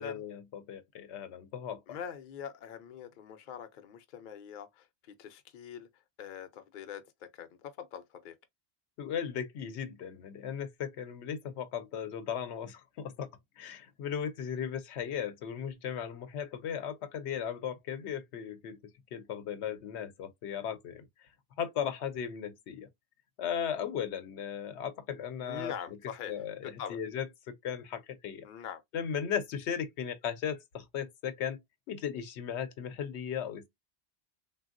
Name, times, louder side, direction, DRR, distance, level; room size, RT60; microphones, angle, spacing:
voice 1, 0.0-1.8 9.0-13.3 13.6-18.8 19.1-21.1 21.6-22.9 23.4-26.0 26.3-28.5 28.9-31.6 31.9-33.7, left 8 dB, 85° left, 0.9 m, -37 dB
voice 2, 1.9-5.9 6.2-8.3 25.4-26.4 26.8-27.0 28.4-28.8, left 8 dB, 55° left, 0.6 m, -43 dB
3.4 x 2.3 x 2.4 m
omnidirectional pair, 1.1 m